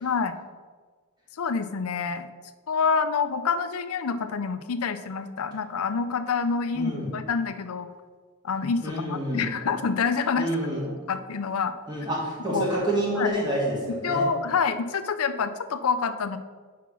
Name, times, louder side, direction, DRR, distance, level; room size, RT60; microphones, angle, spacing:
voice 1, 0.0-0.4 1.4-2.3 2.7-7.9 8.4-10.5 11.1-11.7 12.5-12.7 13.2-13.3 14.0-16.4, left 5 dB, 85° left, 11 dB, 0.5 m, -27 dB
voice 2, 6.7-7.1 8.8-9.5 10.4-10.9 11.9-14.3, right 1 dB, 20° right, -4 dB, 1.9 m, -28 dB
5.8 x 4.7 x 6.0 m, 1.5 s
head